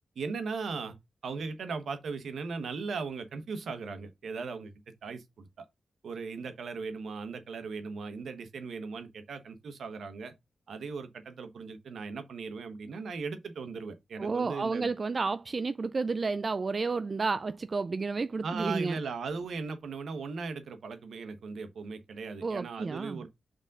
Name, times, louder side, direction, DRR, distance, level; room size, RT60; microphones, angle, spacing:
voice 1, 0.1-0.9 1.2-4.7 5.0-5.7 6.0-10.3 10.7-14.9 18.4-23.3, right 4 dB, 80° right, 1.2 m, -38 dB
voice 2, 14.2-19.0 22.4-23.2, right 4 dB, 45° right, 0.3 m, -31 dB
5.2 x 3.7 x 5.4 m
cardioid pair, 65°, 0 cm